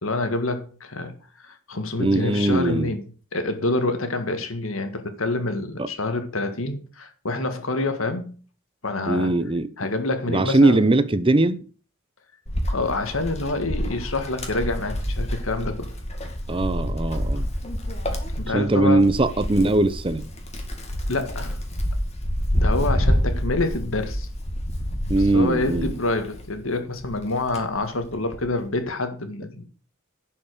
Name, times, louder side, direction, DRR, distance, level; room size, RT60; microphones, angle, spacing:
voice 1, 0.0-3.0 3.3-8.4 8.8-9.3 9.8-10.9 12.7-15.9 18.3-19.0 21.1-21.6 22.6-24.3 25.3-29.6, left 2 dB, 80° left, 1.8 m, -27 dB
voice 2, 2.0-2.9 5.8-5.9 9.1-9.7 10.3-11.6 16.5-17.5 18.4-20.3 25.1-25.9, right 2 dB, 25° right, 0.7 m, -20 dB
Wind, 12.5-26.6 27.0-28.5, equal, 30° left, 2.2 m, -28 dB
11.0 x 5.6 x 6.8 m
head